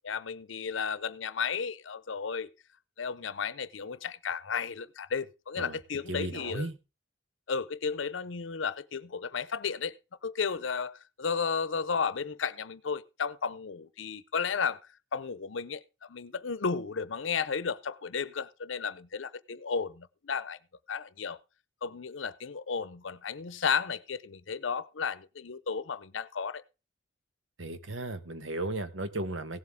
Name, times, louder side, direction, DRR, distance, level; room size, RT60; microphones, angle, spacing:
voice 1, 0.0-2.5 3.0-6.7 7.5-9.9 10.2-14.8 15.1-20.6 20.9-21.4 21.8-26.6, left 6 dB, 80° left, 0.7 m, -33 dB
voice 2, 6.1-6.8 27.6-29.6, right 2 dB, 85° right, 1.3 m, -35 dB
17.0 x 7.6 x 3.6 m
head